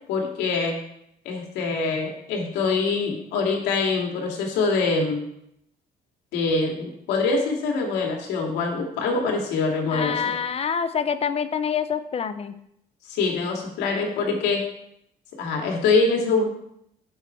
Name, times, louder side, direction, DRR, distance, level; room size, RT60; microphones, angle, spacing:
voice 1, 0.1-0.8 1.2-5.2 6.3-10.4 13.1-14.7 15.4-16.5, left 4 dB, 90° left, 1 dB, 2.8 m, -24 dB
voice 2, 9.9-12.6, left 7 dB, 35° left, 12 dB, 0.8 m, -26 dB
11.5 x 7.5 x 4.7 m, 0.75 s
cardioid pair, 110°, 17 cm